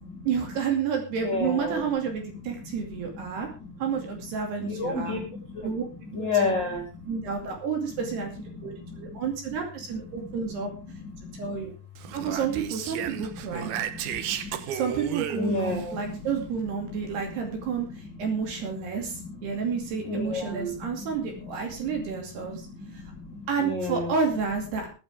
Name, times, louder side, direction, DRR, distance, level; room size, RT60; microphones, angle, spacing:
voice 1, 0.3-3.5 3.8-5.2 5.6-5.9 6.2-6.6 7.1-8.3 8.6-10.7 11.3-11.7 12.1-13.7 14.7-22.7 22.9-23.0 23.5-24.9, right 6 dB, 55° right, 3 dB, 4.2 m, -30 dB
voice 2, 1.2-1.8 2.6-2.8 3.1-3.8 4.6-5.7 6.1-7.2 8.5-9.2 10.1-10.5 11.0-11.6 12.2-12.3 13.3-14.6 15.3-16.2 16.8-17.8 18.1-18.3 19.1-19.7 20.0-21.0 21.3-21.5 21.9-24.1, left 3 dB, 25° left, 0 dB, 3.4 m, -33 dB
Speech, 12.0-15.9, right 11 dB, 85° right, 2.2 m, -34 dB
23.0 x 9.3 x 3.6 m, 0.33 s
omnidirectional pair, 5.9 m